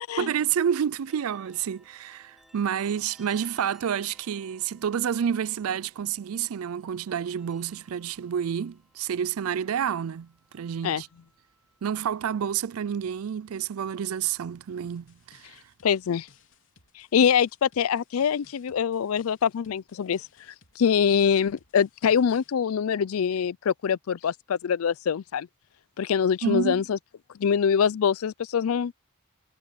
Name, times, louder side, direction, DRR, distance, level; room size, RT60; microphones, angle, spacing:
voice 1, 0.2-10.3 10.5-11.1 11.8-15.5 26.4-26.8, right 8 dB, 85° right, 0.4 m, -29 dB
sound 1, 1.1-14.4, equal, ahead, 3.3 m, -61 dB
sound 2, 14.8-22.5, left 6 dB, 65° left, 3.6 m, -60 dB
voice 2, 15.8-16.3 17.0-20.2 20.8-25.5 26.0-27.0 27.4-28.9, left 7 dB, 85° left, 0.4 m, -24 dB
head